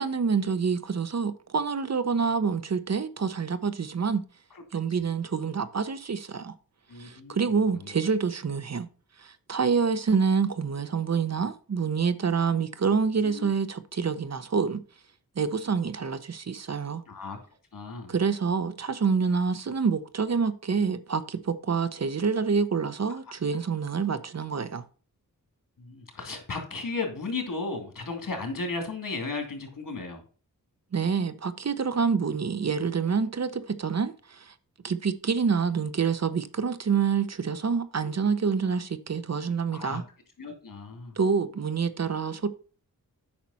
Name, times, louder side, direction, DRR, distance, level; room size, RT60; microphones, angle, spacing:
voice 1, 0.0-4.2 4.7-6.5 7.0-8.9 9.2-14.8 15.4-17.0 18.1-24.8 30.9-34.5 34.8-40.0 41.2-42.5, right 5 dB, 50° right, 0.7 m, -27 dB
voice 2, 6.9-7.4 7.8-7.9 13.2-13.5 17.1-17.4 17.7-18.1 25.8-30.2 38.0-38.3 39.7-40.0 40.4-41.2, left 3 dB, 65° left, 2.6 m, -35 dB
8.6 x 5.8 x 4.1 m
wide cardioid pair, 80°, 35 cm